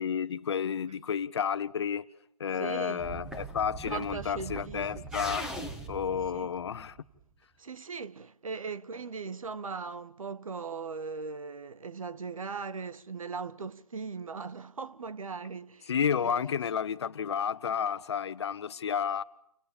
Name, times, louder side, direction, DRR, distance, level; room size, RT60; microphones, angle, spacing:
voice 1, 0.0-2.0 2.4-5.5 5.9-7.0 15.9-19.2, left 7 dB, 45° left, 1.2 m, -31 dB
voice 2, 2.5-3.0 3.9-5.2 6.1-6.5 7.6-16.4, right 5 dB, 65° right, 1.2 m, -39 dB
sound 1, 3.0-7.2, right 2 dB, 5° right, 1.6 m, -40 dB
30.0 x 25.0 x 7.2 m
figure-of-eight pair, 145°, 19 cm